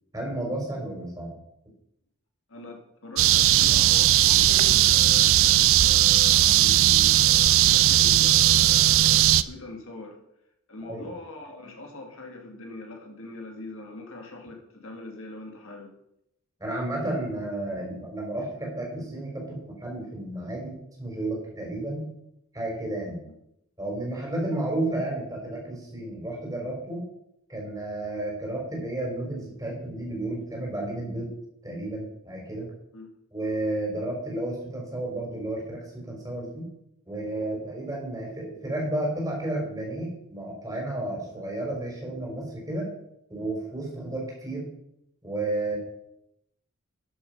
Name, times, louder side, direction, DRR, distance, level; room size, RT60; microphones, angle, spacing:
voice 1, 0.1-1.3 10.9-11.1 16.6-20.7 21.0-22.1 22.5-23.2 23.8-27.0 27.5-31.3 31.6-32.7 33.3-36.6 37.1-42.9 43.3-44.7 45.2-45.8, right 1 dB, 15° right, -2 dB, 4.4 m, -32 dB
voice 2, 2.5-10.2 10.7-15.9 23.0-23.3 32.9-33.1, left 2 dB, 65° left, 2 dB, 2.2 m, -42 dB
sound 1, 3.2-9.4, right 13 dB, 60° right, 0.4 m, -18 dB
12.5 x 7.2 x 5.4 m, 0.81 s
head